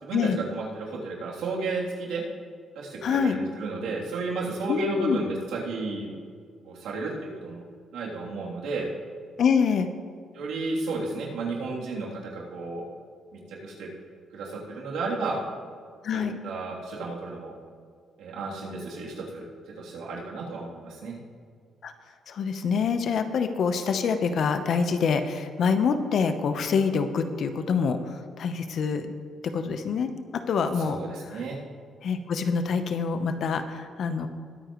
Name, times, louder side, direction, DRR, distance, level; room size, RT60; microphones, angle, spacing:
voice 1, 0.0-2.2 2.7-6.1 6.6-7.6 7.9-8.9 10.3-12.8 13.5-13.9 14.3-15.4 16.1-17.5 18.2-19.5 19.8-21.1 30.8-31.6, right 3 dB, 85° right, -4 dB, 3.2 m, -33 dB
voice 2, 3.0-3.4 4.7-5.2 9.4-9.9 16.0-16.4 21.8-21.9 22.3-29.1 29.5-30.1 30.5-31.0 31.3-31.4 32.0-34.3, left 6 dB, 65° left, 8 dB, 1.0 m, -26 dB
21.0 x 9.1 x 3.2 m, 2.1 s
cardioid pair, 90°, 0 cm